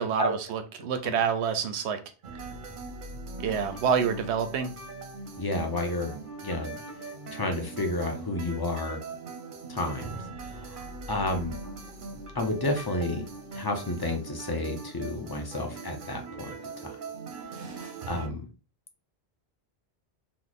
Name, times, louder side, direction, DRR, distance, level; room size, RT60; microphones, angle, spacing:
voice 1, 0.0-2.0 3.4-4.7, right 7 dB, 90° right, 0.9 m, -27 dB
sound 1, 2.2-18.3, right 3 dB, 55° right, 0.7 m, -41 dB
voice 2, 5.4-6.1 6.4-6.7 7.3-9.0 9.7-10.2 10.5-11.6 12.3-13.2 13.6-16.5 16.8-17.0 17.7-18.5, left 1 dB, 30° left, 0.5 m, -31 dB
3.1 x 2.1 x 3.9 m
omnidirectional pair, 1.1 m